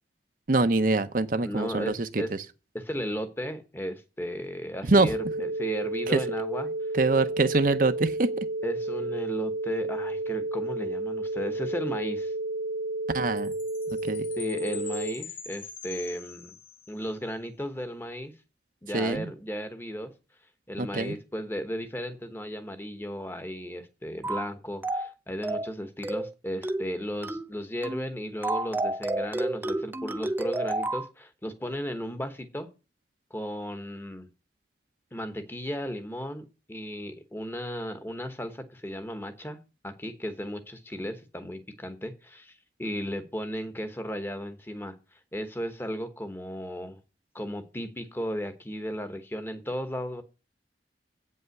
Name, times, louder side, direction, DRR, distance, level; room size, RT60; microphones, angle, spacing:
voice 1, 0.5-2.2 4.9-5.1 6.1-6.2 6.9-8.3 13.1-13.5 14.1-14.3 18.9-19.3 20.8-21.1, right 3 dB, 50° right, 0.7 m, -24 dB
voice 2, 1.4-2.3 2.7-6.7 8.6-12.3 14.4-16.5 16.9-18.3 18.8-20.1 20.7-32.7 33.3-34.3 35.1-39.6 39.8-47.0 47.3-50.2, equal, 15° left, 1.0 m, -35 dB
sound 1, 5.1-15.1, right 2 dB, 75° right, 1.5 m, -32 dB
Chime, 13.4-17.1, left 5 dB, 30° left, 1.4 m, -43 dB
sound 2, 24.2-24.5 24.8-25.1 25.4-25.7 26.0-26.3 26.6-26.9 27.2-27.5 27.8-28.1 28.4-31.1, right 2 dB, 10° right, 0.4 m, -30 dB
8.6 x 5.6 x 7.8 m
head